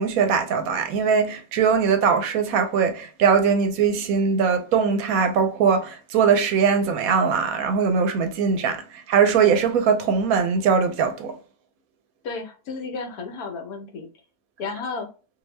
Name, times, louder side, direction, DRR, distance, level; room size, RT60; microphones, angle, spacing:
voice 1, 0.0-11.4, right 6 dB, 75° right, 1.0 m, -21 dB
voice 2, 12.2-14.1 14.6-15.1, left 4 dB, 75° left, 1.2 m, -32 dB
2.8 x 2.6 x 3.1 m
omnidirectional pair, 1.6 m